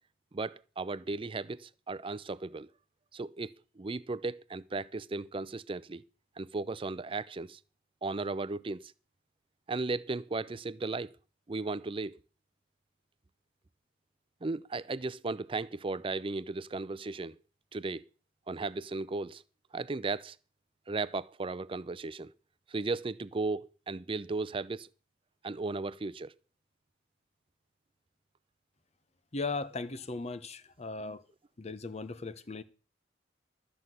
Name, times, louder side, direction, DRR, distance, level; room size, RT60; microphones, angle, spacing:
voice 1, 0.3-2.7 3.1-6.0 6.4-7.6 8.0-8.9 9.7-11.1 11.5-12.2 14.4-17.4 17.7-18.0 18.5-19.4 19.7-20.4 20.9-22.3 22.7-24.9 25.4-26.3, right 3 dB, 30° right, 0.5 m, -35 dB
voice 2, 29.3-31.2 31.6-32.6, left 3 dB, 35° left, 0.8 m, -37 dB
13.0 x 5.6 x 7.7 m
head